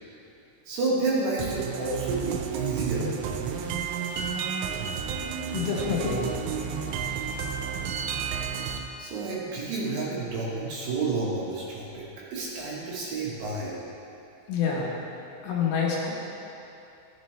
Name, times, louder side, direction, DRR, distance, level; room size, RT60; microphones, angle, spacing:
voice 1, 0.7-3.1 9.0-13.8, right 3 dB, 70° right, -6 dB, 3.2 m, -30 dB
sound 1, 1.4-8.8, right 7 dB, 85° right, 3.0 m, -31 dB
voice 2, 5.5-6.4 7.0-7.2 14.5-14.9 15.4-16.1, left 5 dB, 75° left, -4 dB, 3.6 m, -27 dB
14.0 x 7.5 x 3.2 m, 2.7 s
omnidirectional pair, 5.6 m